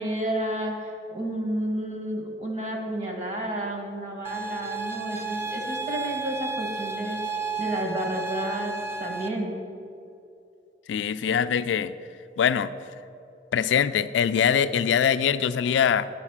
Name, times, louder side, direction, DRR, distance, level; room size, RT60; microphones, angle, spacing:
voice 1, 0.0-7.2 7.6-8.7 9.0-9.5, right 1 dB, 40° right, 1 dB, 1.2 m, -31 dB
sound 1, 4.2-9.3, right 4 dB, 15° right, 0.4 m, -32 dB
voice 2, 10.9-11.9 12.4-12.7 13.5-16.1, left 8 dB, 90° left, 13 dB, 0.3 m, -23 dB
9.7 x 4.1 x 7.2 m, 2.6 s
head